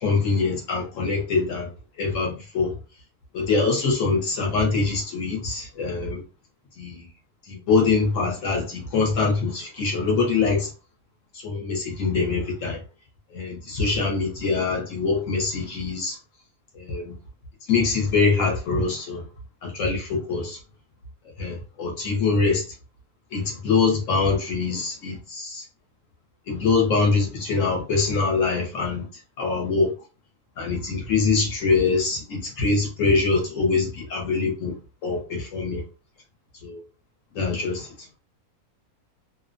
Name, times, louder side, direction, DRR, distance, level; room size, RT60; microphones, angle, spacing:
voice 1, 0.0-1.7 2.0-2.8 3.3-6.2 6.8-7.1 7.5-10.7 11.3-12.8 13.3-16.2 16.7-17.1 17.7-19.2 19.6-20.6 21.4-22.7 23.3-25.6 26.5-29.0 29.4-29.9 30.6-34.8 35.0-35.8 36.6-36.8 37.3-37.9, left 4 dB, 65° left, 0.9 m, -24 dB
2.6 x 2.0 x 2.5 m
omnidirectional pair, 1.6 m